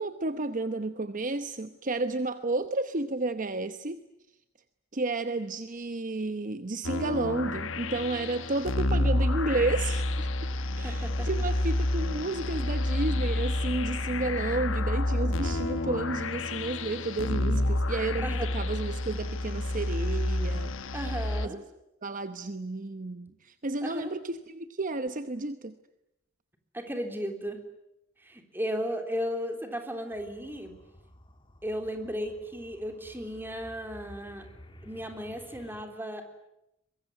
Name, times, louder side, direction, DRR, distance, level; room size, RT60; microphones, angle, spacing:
voice 1, 0.0-4.1 4.9-10.5 10.8-20.7 21.4-21.6 22.0-25.7, right 2 dB, 40° right, 10 dB, 0.9 m, -32 dB
sound 1, 6.8-21.5, left 1 dB, 70° left, 1.2 m, -29 dB
voice 2, 10.6-11.3 18.2-18.5 20.9-21.6 23.8-24.1 26.7-27.6 28.2-30.7 31.6-34.5 34.8-36.2, equal, 10° right, 5 dB, 3.5 m, -35 dB
sound 2, 30.1-35.8, equal, 25° left, 2.2 m, -53 dB
23.5 x 22.5 x 9.7 m, 0.85 s
head